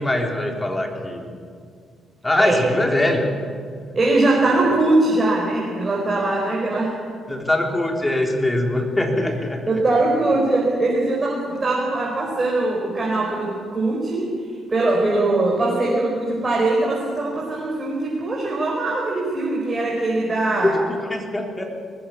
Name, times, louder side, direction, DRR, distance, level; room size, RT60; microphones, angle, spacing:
voice 1, 0.0-1.3 2.2-3.3 7.3-9.6 20.6-21.8, left 1 dB, 15° left, 2 dB, 3.7 m, -22 dB
voice 2, 3.9-7.0 9.2-9.3 9.6-14.3 14.7-20.8, right 2 dB, 30° right, -3 dB, 4.9 m, -21 dB
20.0 x 15.0 x 8.6 m, 2.1 s
figure-of-eight pair, 40°, 0 cm